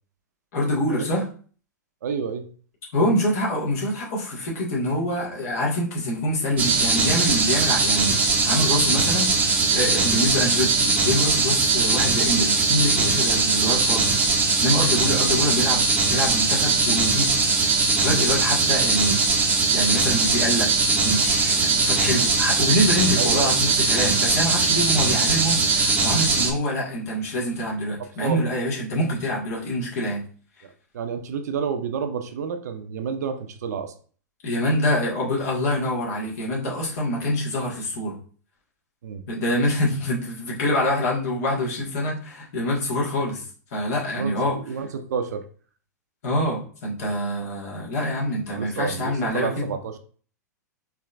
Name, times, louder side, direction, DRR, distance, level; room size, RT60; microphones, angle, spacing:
voice 1, 0.5-1.3 2.9-8.2 8.4-14.1 14.6-15.8 16.1-19.2 19.7-30.2 34.4-38.2 39.3-43.4 43.7-44.6 46.2-49.7, left 1 dB, 60° left, -3 dB, 1.7 m, -25 dB
voice 2, 2.0-2.4 23.2-23.6 28.2-28.4 30.6-33.9 39.0-39.2 44.1-45.4 48.5-50.0, right 6 dB, 65° right, 7 dB, 0.6 m, -30 dB
sound 1, 6.6-26.5, right 4 dB, 15° right, 0.8 m, -21 dB
4.6 x 3.1 x 2.5 m, 0.42 s
figure-of-eight pair, 105°, 10 cm